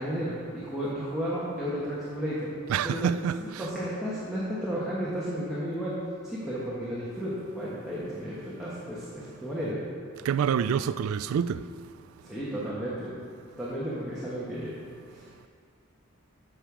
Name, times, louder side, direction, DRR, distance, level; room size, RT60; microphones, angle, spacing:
voice 1, 0.0-2.5 2.8-3.1 3.4-9.8 12.2-13.1 13.6-14.7 15.1-15.3, equal, ahead, 1.3 m, -33 dB
voice 2, 2.7-3.7 10.2-11.6, right 7 dB, 80° right, 0.3 m, -27 dB
8.9 x 6.4 x 5.0 m
head